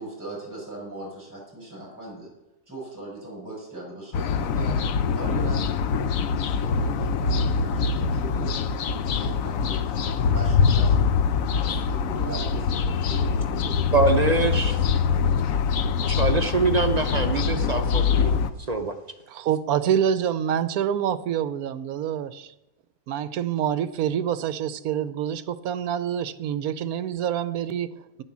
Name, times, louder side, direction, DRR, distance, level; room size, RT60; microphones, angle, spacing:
voice 1, 0.0-2.3 2.7-4.8 5.1-6.1 6.5-8.6 9.1-9.9 10.3-11.2 11.6-14.7, right 2 dB, 10° right, -4 dB, 5.6 m, -39 dB
sound 1, 4.1-18.5, left 6 dB, 65° left, 1.0 m, -24 dB
voice 2, 13.9-14.8 16.1-18.3 18.7-19.0, right 3 dB, 45° right, 5 dB, 0.5 m, -24 dB
voice 3, 19.3-22.5 23.1-28.2, right 9 dB, 70° right, 14 dB, 1.1 m, -26 dB
10.0 x 9.8 x 7.3 m, 0.93 s
omnidirectional pair, 1.7 m